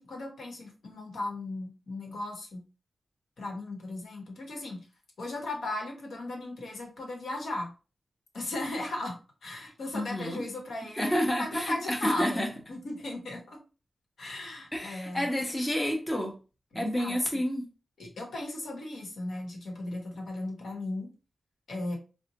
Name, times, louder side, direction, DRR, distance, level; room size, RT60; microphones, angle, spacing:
voice 1, 0.0-2.6 3.4-4.9 5.2-7.7 8.3-12.4 12.7-13.6 14.2-15.3 16.7-17.4 18.0-21.1 21.7-22.0, left 2 dB, 85° left, 1.0 m, -37 dB
voice 2, 9.9-10.4 11.0-12.5 14.7-16.3 16.7-17.7, equal, 15° left, 0.6 m, -29 dB
4.0 x 2.1 x 2.7 m
wide cardioid pair, 140°, 0 cm